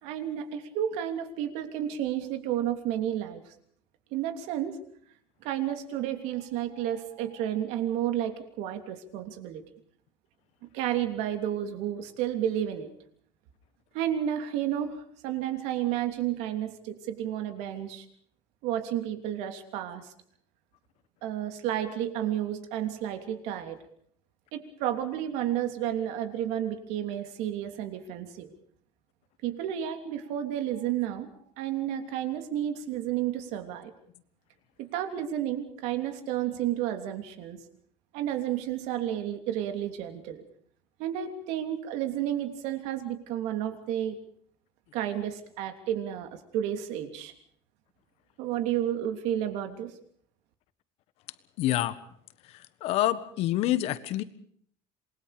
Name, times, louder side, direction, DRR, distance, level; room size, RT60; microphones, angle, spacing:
voice 1, 0.0-3.4 4.1-4.8 5.4-9.6 10.7-12.9 13.9-18.0 18.6-20.1 21.2-23.8 24.5-28.5 29.4-31.3 31.6-33.9 34.8-37.6 38.1-40.4 41.0-44.2 44.9-47.3 48.4-49.9, right 11 dB, 70° right, 7 dB, 3.1 m, -31 dB
voice 2, 51.6-52.0 52.8-54.2, left 14 dB, 60° left, 14 dB, 1.5 m, -26 dB
27.5 x 21.0 x 5.1 m, 0.62 s
cardioid pair, 155°, 12 cm